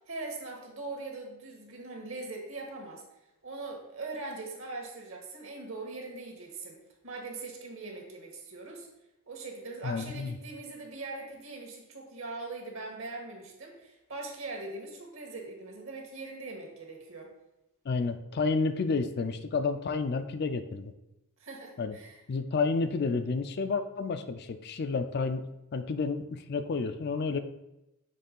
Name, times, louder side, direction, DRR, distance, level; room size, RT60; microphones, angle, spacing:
voice 1, 0.1-3.0 3.4-6.8 7.0-8.9 9.3-17.3 21.4-22.2, right 3 dB, 60° right, 0 dB, 1.6 m, -41 dB
voice 2, 9.8-10.4 17.9-20.9 21.8-21.9 22.3-25.5 25.7-27.4, left 4 dB, 45° left, 10 dB, 0.4 m, -30 dB
6.7 x 3.3 x 5.3 m, 0.91 s
head